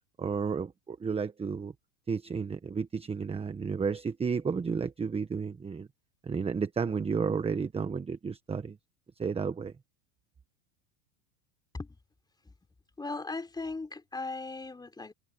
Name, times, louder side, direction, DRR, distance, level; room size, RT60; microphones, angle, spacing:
voice 1, 0.2-1.7 2.1-5.9 6.2-8.8 9.2-9.7, right 5 dB, 15° right, 1.2 m, -32 dB
voice 2, 13.0-15.1, left 3 dB, 10° left, 3.5 m, -38 dB
supercardioid pair, 125°, 45 cm